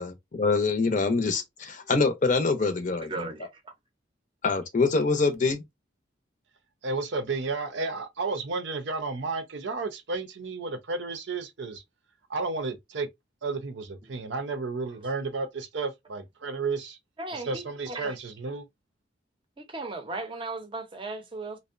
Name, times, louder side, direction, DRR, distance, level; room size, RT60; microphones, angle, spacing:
voice 1, 0.0-3.1 4.4-5.6, left 4 dB, 45° left, 0.5 m, -25 dB
voice 2, 2.9-3.7 14.0-14.1 17.2-18.1 19.6-21.6, right 2 dB, 25° right, 0.6 m, -37 dB
voice 3, 6.8-11.8 12.3-13.1 13.4-17.0 17.3-18.6, right 3 dB, 70° right, 0.6 m, -32 dB
2.6 x 2.0 x 2.4 m
head